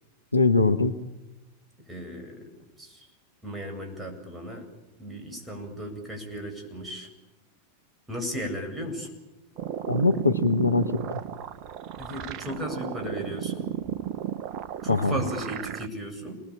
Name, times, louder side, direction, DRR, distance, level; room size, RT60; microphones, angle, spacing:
voice 1, 0.3-1.0 9.9-11.2 14.9-15.2, left 3 dB, 85° left, 9 dB, 1.3 m, -22 dB
voice 2, 1.9-2.5 2.8-3.1 3.4-4.7 5.0-7.1 8.1-9.1 12.0-13.7 14.8-16.4, equal, 5° right, 2 dB, 8.0 m, -35 dB
sound 1, 9.6-15.9, right 9 dB, 40° right, 1.2 m, -34 dB
28.0 x 20.0 x 8.8 m, 1.1 s
figure-of-eight pair, 90°, 0 cm